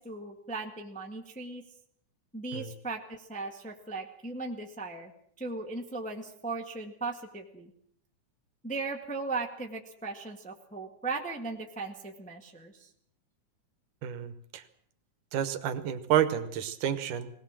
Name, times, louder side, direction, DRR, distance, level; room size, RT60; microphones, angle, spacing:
voice 1, 0.0-1.6 2.3-5.1 5.4-7.7 8.6-12.9, right 3 dB, 5° left, 2 dB, 0.9 m, -37 dB
voice 2, 14.0-14.6 15.3-17.3, right 10 dB, 80° right, 11 dB, 2.7 m, -30 dB
19.5 x 18.5 x 7.5 m, 0.67 s
omnidirectional pair, 3.6 m